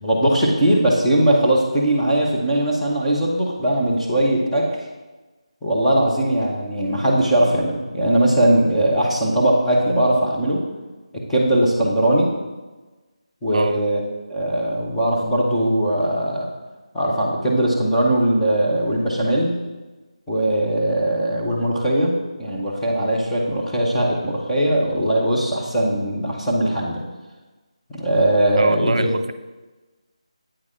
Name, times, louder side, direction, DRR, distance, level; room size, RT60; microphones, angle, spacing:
voice 1, 0.0-4.7 5.6-10.7 11.3-12.3 13.4-14.0 14.3-16.5 16.9-19.5 20.3-22.1 22.4-27.0 27.9-29.1, right 1 dB, 5° left, -9 dB, 0.7 m, -20 dB
voice 2, 28.6-29.3, right 3 dB, 65° right, 10 dB, 0.3 m, -23 dB
8.6 x 4.0 x 4.9 m, 1.2 s
figure-of-eight pair, 175°, 4 cm